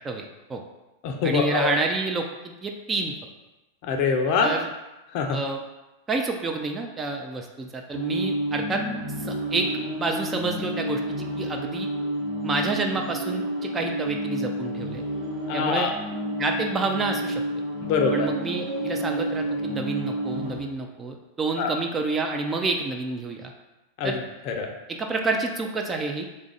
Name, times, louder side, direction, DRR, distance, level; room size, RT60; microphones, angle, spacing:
voice 1, 0.0-0.6 1.2-3.1 4.4-4.7 5.3-5.6 6.1-8.8 9.2-9.7 10.0-11.9 12.4-15.0 15.5-15.9 16.4-17.4 18.1-23.5 24.0-24.2 24.9-26.3, right 3 dB, 20° right, 3 dB, 0.4 m, -29 dB
voice 2, 1.0-1.7 3.8-4.6 5.1-5.4 15.5-15.9 17.8-18.3 21.6-21.7 24.0-24.7, left 5 dB, 45° left, 2 dB, 0.5 m, -24 dB
sound 1, 7.9-20.6, right 1 dB, 35° right, 0.9 m, -30 dB
3.2 x 2.4 x 3.9 m, 1.0 s
figure-of-eight pair, 90°, 0 cm